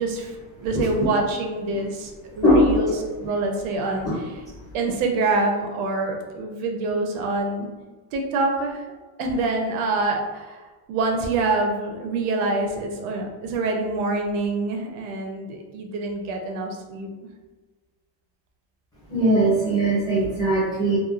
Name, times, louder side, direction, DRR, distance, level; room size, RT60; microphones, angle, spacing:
voice 1, 0.0-2.9 3.2-4.4 4.7-7.7 8.1-10.6 10.9-17.1, right 3 dB, 60° right, 2 dB, 0.5 m, -26 dB
voice 2, 19.1-21.0, right 1 dB, 10° left, -11 dB, 0.4 m, -19 dB
3.0 x 2.1 x 2.3 m, 1.3 s
cardioid pair, 170°, 46 cm